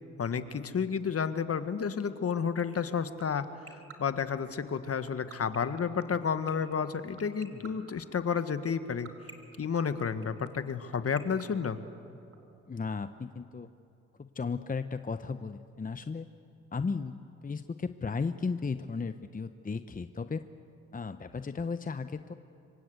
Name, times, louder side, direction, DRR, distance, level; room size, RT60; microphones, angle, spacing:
voice 1, 0.2-9.1 9.6-11.8, left 6 dB, 50° left, 11 dB, 1.6 m, -31 dB
sound 1, 2.7-12.4, right 5 dB, 45° right, 3.7 m, -47 dB
voice 2, 7.5-7.9 12.7-13.7 14.2-16.3 16.7-17.1 17.4-20.4 20.9-22.3, left 4 dB, 25° left, 10 dB, 0.9 m, -35 dB
26.0 x 24.5 x 8.1 m, 2.7 s
supercardioid pair, 50°, 31 cm